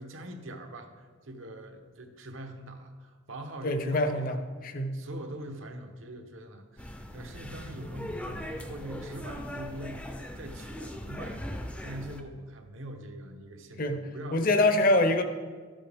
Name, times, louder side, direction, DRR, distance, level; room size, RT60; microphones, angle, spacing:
voice 1, 0.0-4.4 4.9-14.5 14.9-15.0, right 1 dB, 80° right, 5 dB, 1.0 m, -43 dB
voice 2, 3.6-4.4 4.6-4.9 13.8-14.0 14.3-15.2, left 2 dB, 45° left, 7 dB, 0.8 m, -24 dB
sound 1, 6.8-12.2, left 1 dB, 5° left, 0.5 m, -39 dB
13.0 x 7.5 x 3.5 m, 1.5 s
head